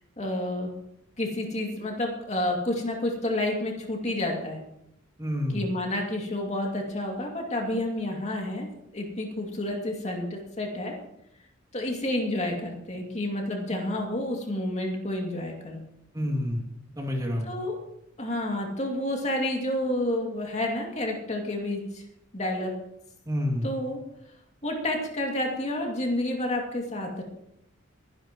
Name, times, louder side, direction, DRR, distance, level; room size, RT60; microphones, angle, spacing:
voice 1, 0.2-0.7 1.2-4.6 5.5-8.7 8.9-10.9 11.7-15.8 17.4-17.8 18.2-22.0 22.3-22.7 23.6-24.0 24.6-27.2, left 1 dB, 35° left, 0 dB, 2.4 m, -29 dB
voice 2, 5.2-5.6 16.1-16.6 17.0-17.5 23.3-23.7, left 1 dB, 20° right, 0 dB, 2.4 m, -28 dB
22.0 x 11.0 x 3.1 m, 0.79 s
head